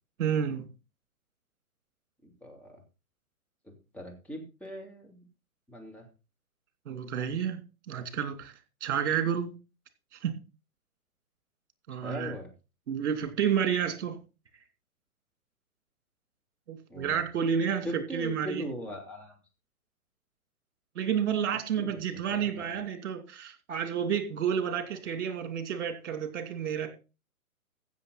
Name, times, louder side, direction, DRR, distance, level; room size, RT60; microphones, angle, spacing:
voice 1, 0.2-0.7 6.9-7.6 7.9-8.5 8.8-9.5 10.2-10.4 11.9-12.3 12.9-14.2 16.7-18.6 21.0-26.9, right 8 dB, 55° right, 2.7 m, -30 dB
voice 2, 2.2-2.8 3.6-5.2 5.7-6.1 12.0-12.5 16.9-17.2 17.8-19.4 21.8-22.0 22.3-22.8, equal, 5° left, 2.8 m, -40 dB
15.5 x 6.9 x 4.0 m
hypercardioid pair, 130°, 43 cm